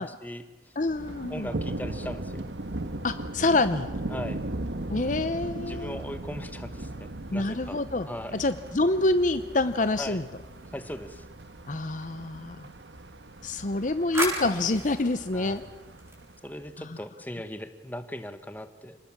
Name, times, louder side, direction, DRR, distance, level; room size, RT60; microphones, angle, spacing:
voice 1, 0.0-0.7 1.3-2.4 4.1-4.4 5.7-7.8 8.1-8.4 10.0-10.2 10.7-11.3 15.3-15.7 16.4-19.0, equal, 10° left, 10 dB, 1.4 m, -39 dB
voice 2, 0.8-1.5 3.0-3.9 4.9-6.0 7.3-8.1 8.3-10.2 11.7-12.6 13.4-15.6, left 2 dB, 45° left, 11 dB, 0.8 m, -26 dB
Thunder, 0.8-16.7, right 1 dB, 85° right, 1.5 m, -38 dB
sound 1, 9.4-11.1 13.4-16.7, equal, 15° right, 7.9 m, -37 dB
28.5 x 20.0 x 7.4 m, 1.2 s
head